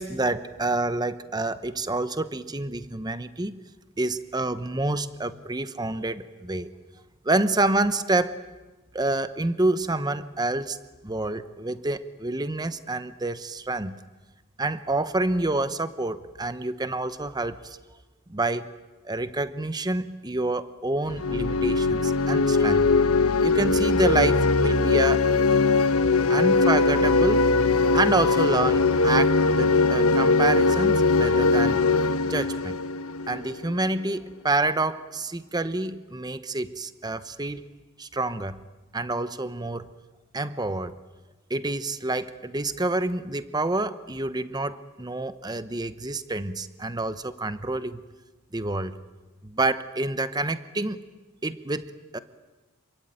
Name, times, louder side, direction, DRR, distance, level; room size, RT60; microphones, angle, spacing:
voice 1, 0.0-3.6 4.0-6.7 7.2-8.4 8.9-10.8 11.0-14.0 14.6-17.8 18.3-18.7 19.0-22.9 23.4-25.3 26.3-27.5 27.9-31.8 32.2-32.8 33.3-37.6 38.0-38.6 38.9-39.9 40.3-40.9 41.5-48.0 48.5-49.0 49.4-51.0 51.4-52.2, right 2 dB, 20° right, 12 dB, 0.9 m, -28 dB
sound 1, 21.1-33.7, left 3 dB, 80° left, 1.2 m, -21 dB
27.5 x 23.5 x 9.2 m, 1.2 s
head